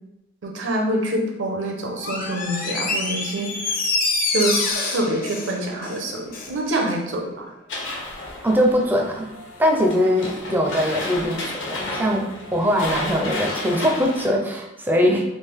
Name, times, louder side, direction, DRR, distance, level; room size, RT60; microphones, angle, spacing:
voice 1, 0.4-3.5 4.3-4.6 4.9-7.5 15.0-15.1, right 1 dB, 75° right, 1 dB, 0.7 m, -26 dB
Door, 2.0-6.6 6.9-7.0, left 3 dB, 50° left, 0.5 m, -26 dB
sound 1, 7.7-14.3, left 2 dB, 70° left, 0.8 m, -32 dB
voice 2, 8.4-9.3 9.6-11.4 11.7-15.2, equal, 10° right, 1 dB, 0.4 m, -21 dB
3.4 x 2.4 x 3.5 m, 0.92 s
head